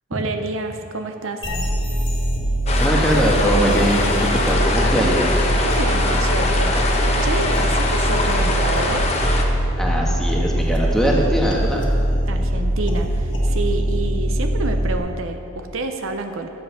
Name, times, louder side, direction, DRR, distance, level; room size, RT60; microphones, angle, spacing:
voice 1, 0.1-1.4 5.6-7.0 7.2-9.1 12.2-16.5, right 3 dB, 70° right, 6 dB, 0.8 m, -28 dB
sound 1, 1.4-15.0, equal, 55° left, 1.6 m, -22 dB
sound 2, 2.7-9.4, left 2 dB, 30° left, 1.0 m, -23 dB
voice 2, 2.8-4.1 4.5-5.3 9.8-11.8, right 1 dB, ahead, -3 dB, 1.4 m, -21 dB
13.0 x 7.7 x 5.7 m, 2.7 s
head